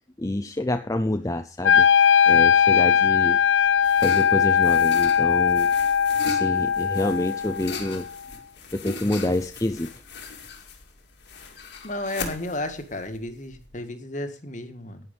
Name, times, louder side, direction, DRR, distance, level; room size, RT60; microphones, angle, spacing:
voice 1, 0.2-1.9 2.3-3.4 4.0-5.7 6.3-8.1 8.7-9.9, left 1 dB, 20° left, 8 dB, 0.6 m, -27 dB
Wind instrument woodwind instrument, 1.6-7.7, left 7 dB, 90° left, 0.6 m, -19 dB
sound 1, 3.3-13.8, left 4 dB, 60° left, 2.3 m, -39 dB
voice 2, 11.8-15.0, left 1 dB, 40° left, 8 dB, 1.7 m, -33 dB
11.0 x 9.7 x 5.3 m, 0.38 s
head